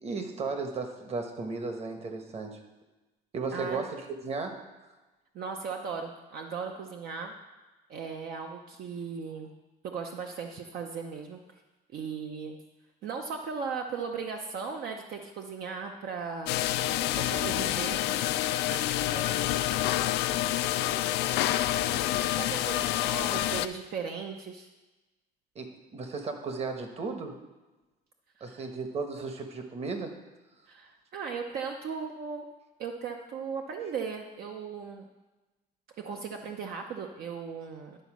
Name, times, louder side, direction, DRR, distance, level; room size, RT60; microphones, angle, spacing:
voice 1, 0.0-2.6 3.3-4.7 25.5-27.4 28.4-30.2, right 4 dB, 40° right, 5 dB, 1.1 m, -35 dB
voice 2, 3.5-3.8 5.3-7.3 7.9-9.5 9.8-11.4 11.9-12.6 13.0-16.5 17.1-18.0 18.7-20.6 22.4-24.7 28.4-28.7 30.7-32.5 32.8-35.1 36.0-38.0, right 5 dB, 65° right, 3 dB, 0.7 m, -37 dB
sound 1, 16.5-23.7, left 14 dB, 80° left, 0.4 m, -28 dB
11.0 x 4.1 x 6.1 m, 1.1 s
cardioid pair, 110°, 17 cm